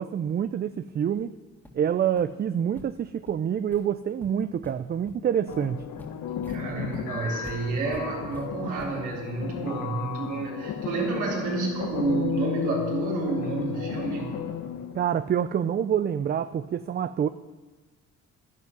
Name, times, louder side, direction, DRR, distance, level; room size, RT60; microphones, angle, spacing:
voice 1, 0.0-1.4 1.7-5.9 14.9-17.3, right 9 dB, 35° right, 12 dB, 0.4 m, -27 dB
sound 1, 1.2-1.3 1.6-1.8 2.2-2.3 2.7-2.8 3.3-3.4 3.7-3.9 4.2-4.7 5.1-5.2 5.5-9.1, left 1 dB, 5° left, 1.9 m, -47 dB
sound 2, 5.5-15.0, left 9 dB, 85° left, 1.1 m, -34 dB
voice 2, 6.5-14.3, right 3 dB, 75° right, -2 dB, 3.9 m, -30 dB
11.0 x 10.5 x 6.0 m, 1.3 s
cardioid pair, 90°, 30 cm